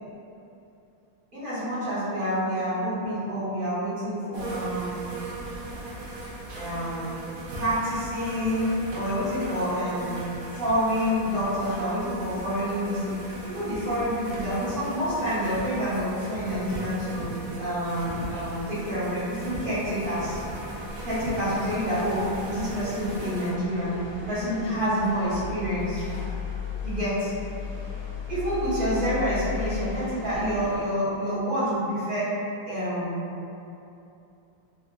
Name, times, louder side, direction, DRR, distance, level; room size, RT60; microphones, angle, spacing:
voice 1, 1.3-5.0 6.5-7.1 7.6-10.2 10.5-13.2 13.4-17.3 17.6-20.4 21.0-26.0 26.8-27.3 28.3-32.3 32.7-33.2, equal, 40° right, -13 dB, 0.8 m, -28 dB
sound 1, 4.3-23.5, right 2 dB, 70° right, 1.0 m, -38 dB
sound 2, 20.0-30.8, left 5 dB, 55° left, 1.2 m, -36 dB
3.8 x 2.1 x 2.2 m, 2.7 s
omnidirectional pair, 2.1 m